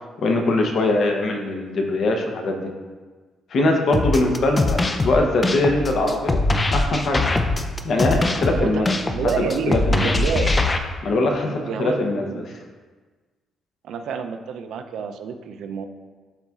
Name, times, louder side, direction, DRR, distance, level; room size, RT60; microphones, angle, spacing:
voice 1, 0.2-2.7 3.5-6.4 6.7-7.2 7.8-9.0 9.4-10.1 11.0-12.4, left 2 dB, 50° left, 2 dB, 0.8 m, -22 dB
sound 1, 3.9-10.8, left 2 dB, 20° left, 0.4 m, -22 dB
voice 2, 9.1-10.6 11.4-12.4 13.8-15.8, right 6 dB, 75° right, 6 dB, 0.4 m, -28 dB
11.5 x 4.0 x 2.4 m, 1.4 s
cardioid pair, 150°, 0 cm